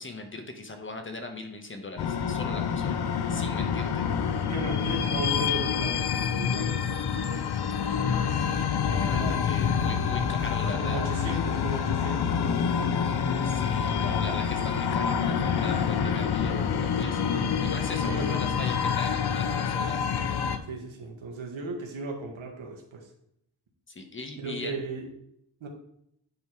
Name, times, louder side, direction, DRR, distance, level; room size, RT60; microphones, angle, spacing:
voice 1, 0.0-3.0 3.3-4.0 8.8-11.4 13.4-20.0 23.9-24.8, left 2 dB, 25° left, 5 dB, 1.0 m, -39 dB
sound 1, 2.0-20.6, left 7 dB, 55° left, 0.7 m, -27 dB
voice 2, 4.5-6.8 7.8-8.2 9.1-9.4 10.6-13.0 18.1-19.0 20.6-23.1 24.4-25.1 25.6-25.7, right 2 dB, 80° right, 3 dB, 1.7 m, -36 dB
8.9 x 4.3 x 4.6 m, 0.74 s
wide cardioid pair, 135°, 46 cm